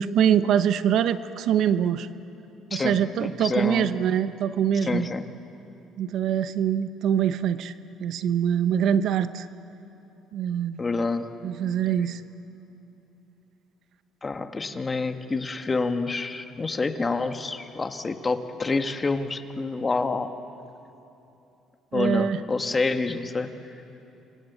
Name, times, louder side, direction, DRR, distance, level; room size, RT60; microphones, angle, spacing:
voice 1, 0.0-2.1 2.7-5.1 6.0-7.7 8.0-9.5 10.3-10.8 11.4-12.2 21.9-22.4, right 9 dB, 65° right, 12 dB, 0.9 m, -24 dB
voice 2, 2.7-3.9 4.8-5.2 10.8-11.3 14.2-20.3 21.9-23.5, left 3 dB, 25° left, 7 dB, 1.6 m, -27 dB
28.5 x 25.0 x 8.1 m, 2.9 s
supercardioid pair, 85°, 0 cm